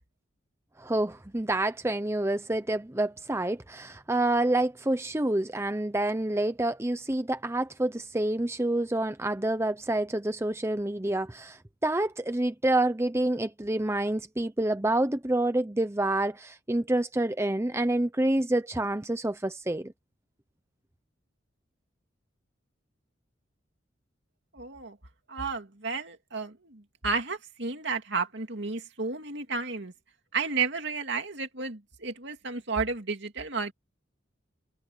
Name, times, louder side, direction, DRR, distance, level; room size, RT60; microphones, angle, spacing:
voice 1, 0.8-19.9, right 1 dB, 15° right, 0.7 m, -28 dB
voice 2, 24.5-25.0 25.3-29.9 30.3-33.7, right 4 dB, 60° right, 2.8 m, -32 dB
head